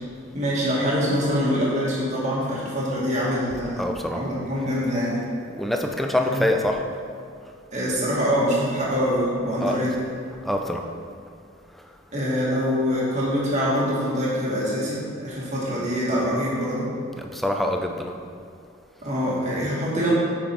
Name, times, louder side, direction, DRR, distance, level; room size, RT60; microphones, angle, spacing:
voice 1, 0.3-3.9 4.1-5.2 6.2-6.4 7.7-9.9 12.1-16.9 19.0-20.1, equal, 35° right, -6 dB, 2.1 m, -24 dB
voice 2, 3.8-4.3 5.5-6.8 9.6-9.9 10.4-10.8 17.2-18.1, left 1 dB, ahead, 3 dB, 0.5 m, -25 dB
8.8 x 6.4 x 4.6 m, 2.3 s
head